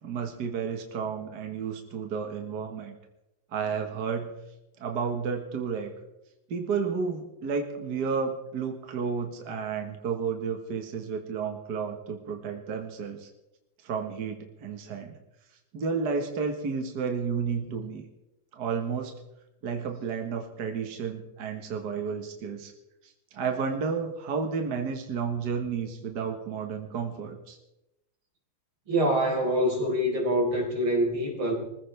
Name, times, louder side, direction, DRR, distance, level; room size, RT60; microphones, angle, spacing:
voice 1, 0.0-3.0 3.5-4.3 4.8-5.9 6.5-13.3 13.8-15.2 15.7-18.0 18.5-19.1 19.6-22.7 23.0-27.6, right 5 dB, 55° right, 3 dB, 1.9 m, -32 dB
voice 2, 28.9-31.5, equal, 90° right, -1 dB, 5.3 m, -25 dB
25.0 x 15.0 x 3.4 m, 0.90 s
omnidirectional pair, 2.3 m